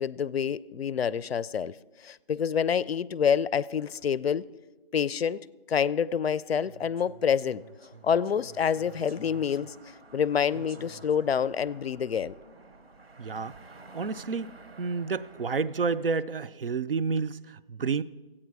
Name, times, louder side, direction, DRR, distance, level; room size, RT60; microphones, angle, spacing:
voice 1, 0.0-4.5 4.9-7.6 8.0-9.7 10.1-12.3, left 7 dB, 85° left, 0.5 m, -27 dB
sound 1, 6.4-16.2, right 3 dB, 90° right, 1.0 m, -50 dB
voice 2, 13.2-13.5 13.9-18.0, right 5 dB, 65° right, 0.5 m, -30 dB
14.5 x 8.7 x 4.7 m
figure-of-eight pair, 180°, 30 cm